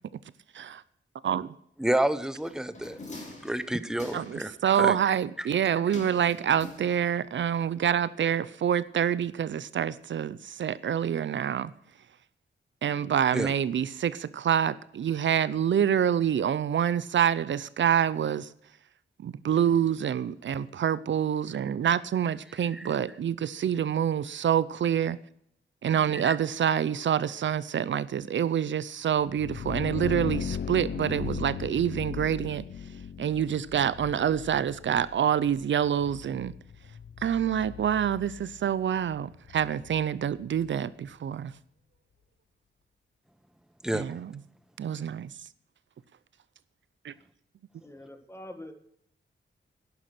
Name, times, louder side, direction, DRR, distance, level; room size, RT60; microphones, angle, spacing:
voice 1, 1.2-1.5 4.1-11.7 12.8-18.5 19.2-25.2 25.8-32.6 33.2-36.5 37.2-41.5 43.9-44.3 44.8-45.3 47.0-47.1, right 9 dB, 70° right, 0.6 m, -27 dB
voice 2, 1.8-3.0 3.4-4.5 4.8-5.0 5.4-5.5 13.3-13.5 22.7-22.9 26.1-26.4 43.8-44.0, right 1 dB, 5° right, 0.7 m, -29 dB
sound 1, 2.4-4.5 5.9-7.3 7.6-7.7, left 2 dB, 35° left, 3.2 m, -45 dB
sound 2, 29.2-40.8, left 7 dB, 55° left, 0.6 m, -38 dB
voice 3, 47.8-48.7, left 1 dB, 15° left, 1.6 m, -44 dB
11.5 x 10.5 x 6.0 m
wide cardioid pair, 165°, 20 cm